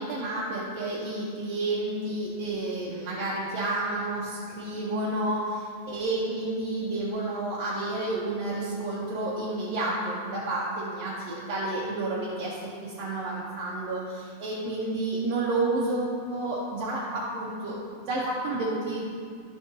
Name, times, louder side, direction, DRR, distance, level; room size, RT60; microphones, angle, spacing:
voice 1, 0.0-19.0, right 2 dB, 70° right, -6 dB, 1.8 m, -30 dB
11.5 x 5.6 x 2.9 m, 2.2 s
omnidirectional pair, 3.3 m